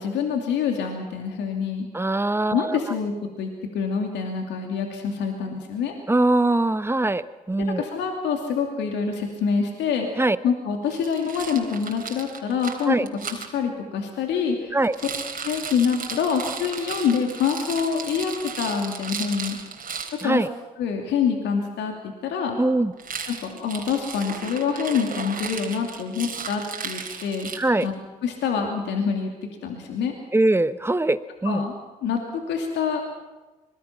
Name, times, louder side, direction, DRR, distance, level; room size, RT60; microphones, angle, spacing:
voice 1, 0.0-1.9 2.5-5.9 7.6-10.1 10.4-13.0 13.3-14.8 15.4-19.6 20.2-20.4 20.8-22.6 23.3-27.5 27.8-27.9 28.2-29.3 29.6-30.1 31.4-31.7 32.0-33.1, left 6 dB, 70° left, 2 dB, 2.7 m, -26 dB
voice 2, 1.9-2.8 6.1-7.8 10.2-10.4 12.9-13.1 14.7-14.9 20.2-20.5 22.6-22.9 27.6-27.9 30.3-31.6, right 2 dB, 15° right, 13 dB, 1.2 m, -22 dB
Rattle, 10.9-13.5 14.8-20.3 23.0-27.9, right 5 dB, 50° right, 3.6 m, -35 dB
25.5 x 21.5 x 5.9 m, 1.2 s
hypercardioid pair, 45°, 19 cm